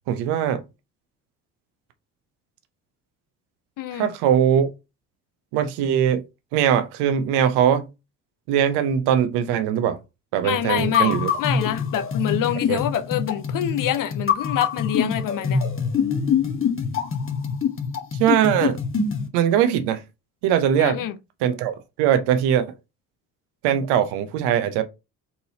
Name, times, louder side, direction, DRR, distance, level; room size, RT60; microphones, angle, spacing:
voice 1, 0.1-0.6 3.9-4.7 5.5-6.2 6.5-7.9 8.5-10.0 10.3-11.3 12.7-12.8 18.2-18.8 19.3-20.0 20.4-21.0 21.4-22.7 23.6-24.8, right 9 dB, 65° right, 0.9 m, -21 dB
voice 2, 3.8-4.1 10.4-15.6 20.8-21.1, left 11 dB, 50° left, 0.7 m, -26 dB
sound 1, 10.8-19.3, left 6 dB, 30° left, 1.2 m, -24 dB
4.3 x 3.9 x 2.8 m
hypercardioid pair, 55°, 43 cm